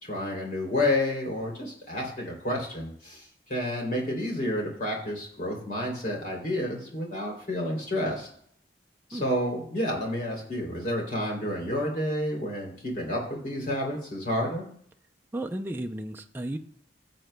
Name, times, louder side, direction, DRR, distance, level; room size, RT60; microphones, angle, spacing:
voice 1, 0.0-3.2 3.5-8.3 9.1-14.6, left 1 dB, 50° left, 0 dB, 2.9 m, -30 dB
voice 2, 15.3-16.6, right 1 dB, 10° right, 3 dB, 0.4 m, -33 dB
15.0 x 7.7 x 2.2 m, 0.63 s
head